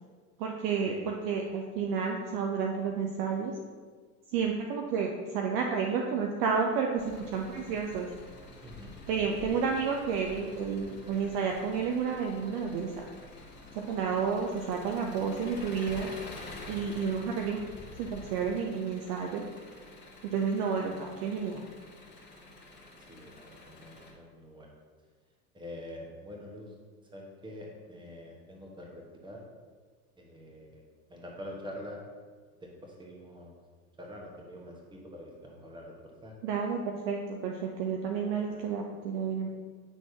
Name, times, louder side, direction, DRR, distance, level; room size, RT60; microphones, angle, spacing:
voice 1, 0.4-3.5 4.3-8.1 9.1-13.1 13.7-16.1 16.7-17.6 18.0-19.4 20.2-21.6 36.4-39.5, right 6 dB, 40° right, 2 dB, 0.7 m, -31 dB
Engine, 7.0-24.1, left 2 dB, 25° left, 1.7 m, -48 dB
voice 2, 8.6-8.9 9.5-9.6 16.7-17.0 23.1-24.7 25.5-26.7 27.1-29.4 30.2-30.8 31.1-32.0 32.6-33.5 34.0-36.3 38.5-38.7, left 1 dB, 10° right, -1 dB, 1.3 m, -46 dB
9.0 x 6.1 x 2.9 m, 1.5 s
figure-of-eight pair, 80°, 45 cm